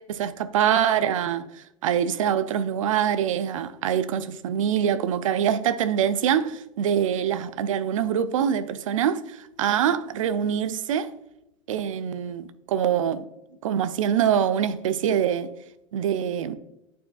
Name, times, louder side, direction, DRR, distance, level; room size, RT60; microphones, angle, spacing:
voice 1, 0.1-1.5 1.8-11.1 11.7-13.3 13.6-15.5 15.9-16.5, right 9 dB, 85° right, 0.4 m, -24 dB
9.0 x 4.6 x 2.4 m
hypercardioid pair, 95°, 16 cm